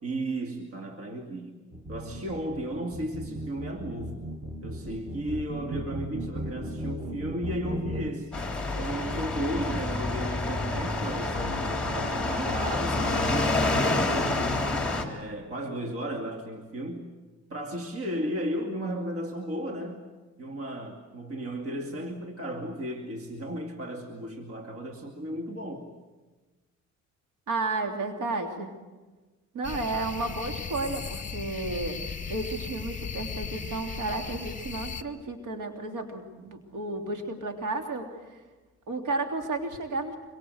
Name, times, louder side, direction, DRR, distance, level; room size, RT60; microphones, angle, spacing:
voice 1, 0.0-1.6 1.9-4.2 4.6-8.3 8.8-17.1 17.5-20.0 20.4-25.9, right 1 dB, 50° right, 3 dB, 2.6 m, -34 dB
sound 1, 1.7-8.1, right 1 dB, 20° right, 2.0 m, -36 dB
sound 2, 8.3-15.0, left 2 dB, 5° left, 3.5 m, -28 dB
voice 2, 27.5-28.7 29.5-32.0 32.3-38.4 38.9-40.1, right 3 dB, 80° right, 4 dB, 3.2 m, -32 dB
sound 3, 29.6-35.0, left 5 dB, 25° left, 1.7 m, -36 dB
25.5 x 23.5 x 8.0 m, 1.3 s
cardioid pair, 120°, 30 cm